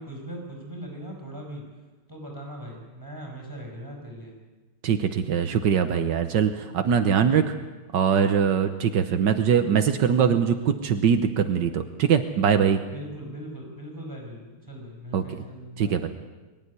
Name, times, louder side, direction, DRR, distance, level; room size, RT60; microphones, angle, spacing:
voice 1, 0.0-1.6 2.1-4.3 12.9-16.1, right 1 dB, 10° right, 1 dB, 5.5 m, -39 dB
voice 2, 4.8-7.5 7.9-12.8 15.1-15.2 15.8-16.1, right 7 dB, 75° right, 7 dB, 1.7 m, -22 dB
23.0 x 13.5 x 9.8 m, 1.2 s
omnidirectional pair, 1.9 m